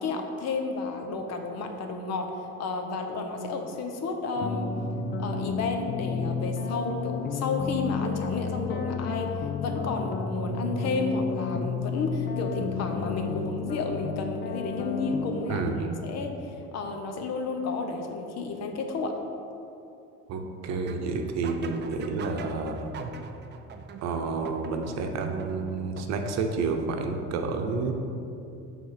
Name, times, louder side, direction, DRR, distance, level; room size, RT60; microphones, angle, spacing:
voice 1, 0.0-4.7 5.2-15.6 16.0-19.2, left 3 dB, 55° left, 4 dB, 0.9 m, -31 dB
sound 1, 4.4-15.5, left 5 dB, 35° left, 0.5 m, -32 dB
voice 2, 15.5-15.9 20.3-22.9 24.0-27.9, right 4 dB, 60° right, 4 dB, 0.8 m, -30 dB
sound 2, 20.7-26.6, right 5 dB, 35° right, 0.5 m, -42 dB
6.3 x 3.6 x 5.8 m, 2.8 s
supercardioid pair, 90°, 31 cm